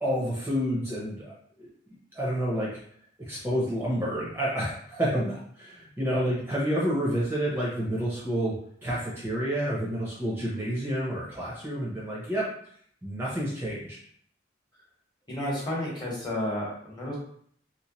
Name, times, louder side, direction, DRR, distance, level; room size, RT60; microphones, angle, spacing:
voice 1, 0.0-2.7 3.3-8.5 8.8-12.5 13.0-14.0, equal, 10° right, -6 dB, 0.7 m, -29 dB
voice 2, 15.3-17.2, left 1 dB, 25° left, -4 dB, 1.1 m, -31 dB
3.1 x 3.1 x 3.0 m, 0.62 s
head